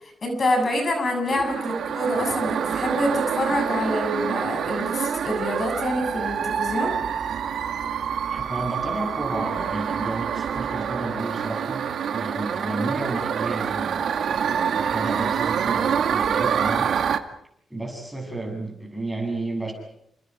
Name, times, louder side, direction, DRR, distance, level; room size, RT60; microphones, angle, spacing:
voice 1, 0.0-7.0, left 1 dB, 40° left, 4 dB, 7.4 m, -26 dB
sound 1, 1.3-17.2, right 7 dB, 70° right, 1.9 m, -26 dB
voice 2, 8.3-11.8 12.1-16.9 17.7-19.7, right 2 dB, 5° right, 2 dB, 7.7 m, -32 dB
30.0 x 27.0 x 4.9 m, 0.73 s
wide cardioid pair, 130°, 0 cm